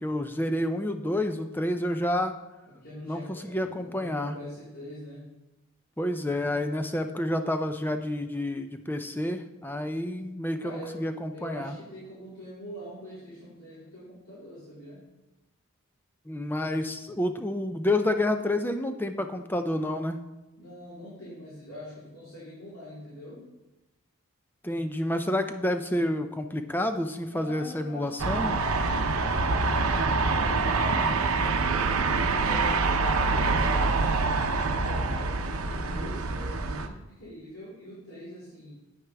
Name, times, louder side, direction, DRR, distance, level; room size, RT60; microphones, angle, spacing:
voice 1, 0.0-2.3 3.0-4.3 6.0-11.7 16.3-20.2 24.6-28.6, left 1 dB, 10° left, 7 dB, 0.5 m, -29 dB
voice 2, 2.6-5.3 10.6-11.0 11.3-15.0 20.6-23.4 27.3-31.2 31.7-35.3 35.6-38.7, left 1 dB, 80° left, -10 dB, 3.8 m, -43 dB
sound 1, 28.2-36.9, right 3 dB, 80° right, 0.7 m, -25 dB
9.3 x 9.1 x 3.5 m, 1.0 s
head